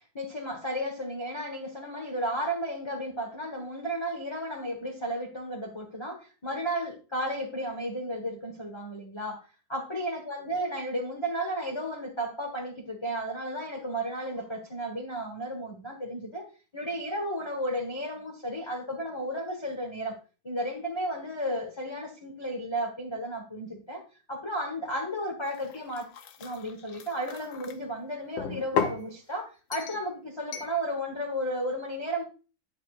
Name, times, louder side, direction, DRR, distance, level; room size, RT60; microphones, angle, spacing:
voice 1, 0.1-9.4 9.7-16.5 16.7-20.2 20.4-24.0 24.3-26.1 26.4-32.2, equal, 15° left, 1.1 m, -33 dB
sound 1, 25.5-27.8 28.4-29.0 29.7-30.1 30.5-30.8, left 7 dB, 75° left, 1.6 m, -34 dB
9.5 x 7.7 x 2.4 m
omnidirectional pair, 2.1 m